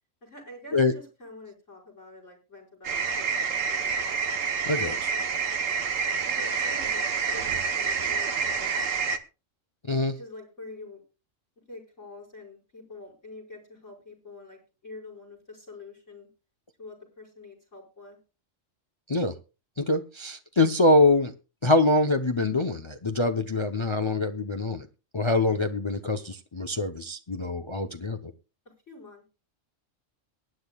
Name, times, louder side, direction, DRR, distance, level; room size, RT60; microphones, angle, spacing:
voice 1, 0.2-4.0 4.8-5.1 6.2-7.0 7.3-9.0 10.1-11.0 11.7-16.3 16.8-18.2 28.9-29.3, left 2 dB, 70° left, 6.0 m, -46 dB
sound 1, 2.8-9.2, right 5 dB, 85° right, 1.5 m, -28 dB
voice 2, 19.8-21.3 21.6-24.9 25.1-28.3, left 2 dB, 30° left, 0.7 m, -24 dB
23.0 x 10.0 x 2.3 m
omnidirectional pair, 1.3 m